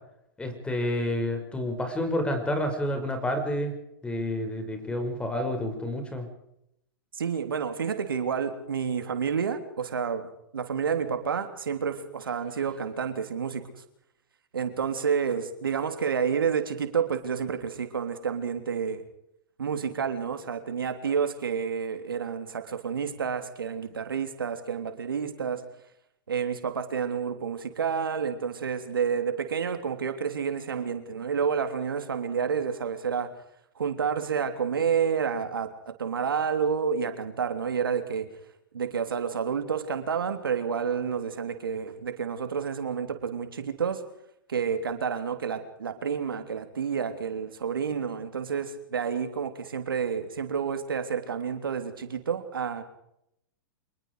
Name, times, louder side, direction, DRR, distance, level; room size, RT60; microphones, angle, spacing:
voice 1, 0.4-3.7 4.0-6.3, left 1 dB, 10° left, 6 dB, 6.0 m, -29 dB
voice 2, 7.2-13.6 14.5-19.0 19.6-25.6 26.3-33.3 33.7-38.3 38.7-44.0 44.5-52.8, right 6 dB, 90° right, 7 dB, 3.3 m, -29 dB
26.5 x 20.5 x 4.9 m, 0.78 s
hypercardioid pair, 125°, 11 cm